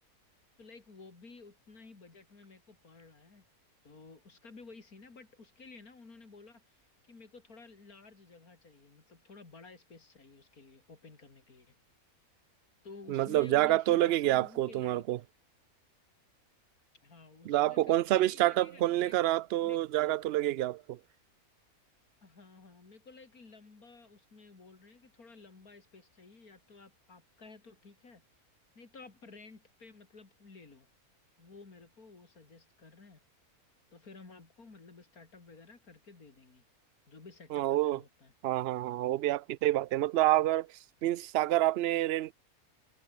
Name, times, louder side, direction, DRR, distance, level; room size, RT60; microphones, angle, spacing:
voice 1, 0.6-3.5 3.8-11.7 12.8-15.0 17.0-19.2 19.6-20.2 22.2-28.2 28.8-30.9 31.4-33.2 33.9-36.6 37.1-38.3, left 4 dB, 80° left, 3.9 m, -53 dB
voice 2, 13.1-15.2 17.5-21.0 37.5-38.0 38.4-40.7 41.0-42.3, right 15 dB, 70° right, 0.6 m, -28 dB
omnidirectional pair, 1.5 m